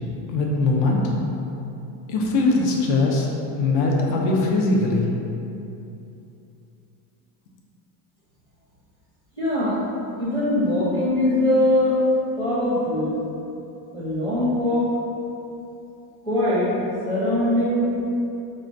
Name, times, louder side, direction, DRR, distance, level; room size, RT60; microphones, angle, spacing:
voice 1, 0.3-1.0 2.1-3.3 3.6-5.1, left 3 dB, 50° left, -1 dB, 0.5 m, -21 dB
voice 2, 9.4-9.8 10.2-12.0 12.4-13.1 13.9-14.8 16.2-16.7 17.0-18.0, left 1 dB, 10° left, -12 dB, 0.6 m, -21 dB
3.7 x 2.2 x 2.5 m, 2.8 s
cardioid pair, 170°, 47 cm